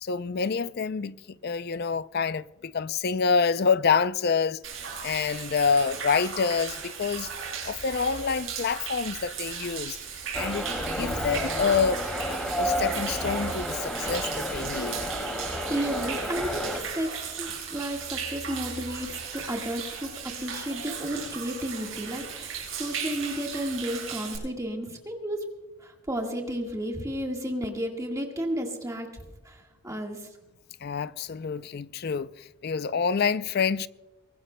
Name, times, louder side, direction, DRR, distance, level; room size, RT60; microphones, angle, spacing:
voice 1, 0.0-1.2 1.4-4.6 5.0-7.3 7.6-10.0 10.4-12.0 12.3-15.0 30.8-33.9, left 5 dB, 45° left, 0.4 m, -27 dB
Human voice / Rain / Stream, 4.6-24.4, right 6 dB, 65° right, 6.9 m, -36 dB
sound 1, 10.3-10.6 10.9-13.6 14.8-14.9, equal, 85° left, 5.3 m, -44 dB
sound 2, 10.3-16.8, equal, 5° left, 2.4 m, -31 dB
voice 2, 15.5-25.5 25.8-29.1 29.4-30.3, equal, 15° right, 1.6 m, -33 dB
23.0 x 19.0 x 2.2 m
head